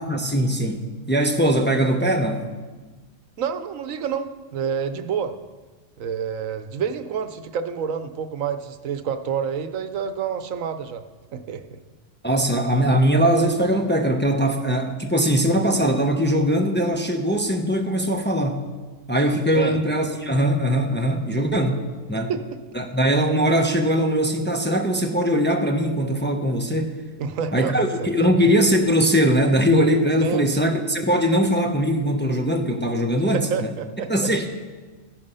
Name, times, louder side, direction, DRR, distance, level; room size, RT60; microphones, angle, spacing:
voice 1, 0.0-2.4 12.2-18.6 19.1-21.8 22.1-22.3 22.7-27.0 27.5-33.7 34.1-34.5, equal, 10° left, 3 dB, 0.8 m, -21 dB
voice 2, 3.4-5.3 6.0-11.0 11.3-11.8 19.5-19.8 22.3-22.4 27.2-28.1 30.2-30.7 33.3-34.3, right 7 dB, 85° right, 9 dB, 1.2 m, -28 dB
14.0 x 10.5 x 5.6 m, 1.3 s
omnidirectional pair, 1.4 m